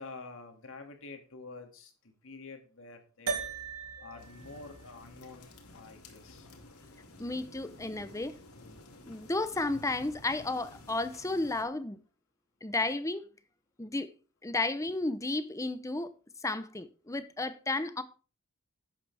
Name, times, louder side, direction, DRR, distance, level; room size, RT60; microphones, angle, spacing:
voice 1, 0.0-1.9 2.2-3.5 4.0-6.5, left 3 dB, 65° left, 2.3 m, -48 dB
sound 1, 3.3-7.8, right 5 dB, 85° right, 2.1 m, -41 dB
sound 2, 4.2-11.6, left 2 dB, 85° left, 2.4 m, -52 dB
voice 2, 7.2-8.4 9.1-12.0 12.6-13.3 13.8-14.1 14.4-16.1 16.4-18.0, left 2 dB, 15° left, 0.7 m, -33 dB
11.5 x 8.8 x 3.4 m
head